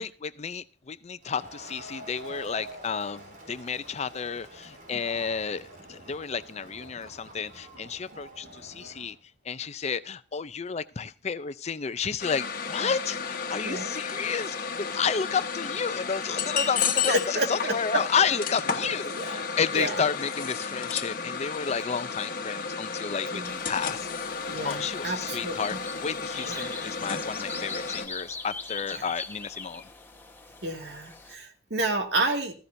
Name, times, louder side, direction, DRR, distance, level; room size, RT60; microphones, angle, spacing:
voice 1, 0.0-9.2 9.5-24.1 24.6-25.7 26.0-29.8, left 6 dB, 40° left, 14 dB, 0.5 m, -31 dB
Crowd, 1.2-9.2, right 1 dB, 50° right, 3.7 m, -46 dB
sound 1, 12.2-28.1, left 5 dB, 55° left, 1.3 m, -33 dB
voice 2, 13.6-13.9 17.1-17.7 19.1-19.4 19.7-20.0 23.3-23.6 24.5-25.8 26.5-26.8 28.9-29.0 30.6-32.5, right 2 dB, 70° right, 4 dB, 2.2 m, -31 dB
sound 2, 23.4-31.3, left 4 dB, 15° left, 1.2 m, -42 dB
15.5 x 15.0 x 2.7 m, 0.35 s
head